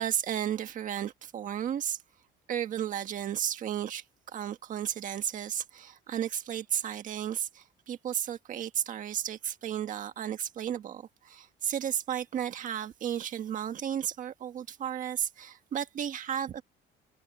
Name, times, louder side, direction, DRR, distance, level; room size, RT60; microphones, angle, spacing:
voice 1, 0.0-2.0 2.5-16.6, right 9 dB, 45° right, 1.5 m, -33 dB
cardioid pair, 175°, 19 cm